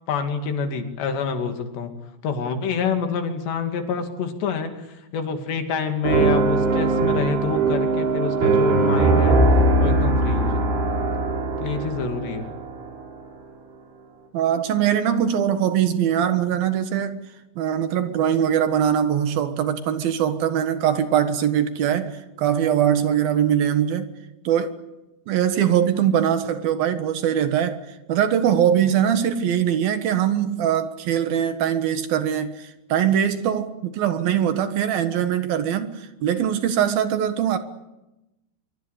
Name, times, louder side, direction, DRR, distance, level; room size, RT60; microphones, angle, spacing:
voice 1, 0.1-1.9 2.2-9.4 9.8-10.6 11.6-12.6, left 5 dB, 85° left, 4.8 m, -27 dB
sound 1, 6.0-13.1, right 2 dB, 90° right, 6.6 m, -20 dB
voice 2, 14.3-17.2 17.6-24.1 24.4-24.8 25.3-27.8 28.1-37.6, right 9 dB, 65° right, 3.2 m, -22 dB
25.0 x 24.0 x 8.3 m
omnidirectional pair, 4.8 m